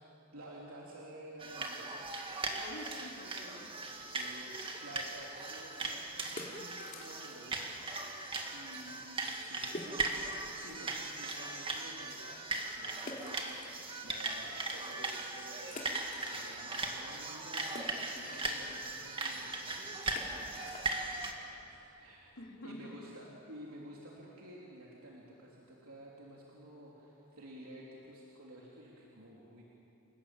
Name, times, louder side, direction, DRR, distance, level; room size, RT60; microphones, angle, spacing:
voice 1, 0.3-1.9 4.1-7.8 8.5-10.2 10.6-22.4 22.6-29.6, right 1 dB, 80° right, -4 dB, 3.2 m, -52 dB
sound 1, 1.4-21.3, right 2 dB, 25° right, 2.0 m, -39 dB
voice 2, 2.5-3.8 22.4-23.2, left 1 dB, 70° left, 1 dB, 3.2 m, -48 dB
sound 2, 6.3-7.5 7.8-7.9 8.5-8.6 8.8-8.9 9.7-10.6 11.1-11.2 13.0-14.3 14.8-14.9 15.6-16.8 17.1-22.6, left 1 dB, 35° left, 3.2 m, -48 dB
29.0 x 18.5 x 8.9 m, 2.9 s
head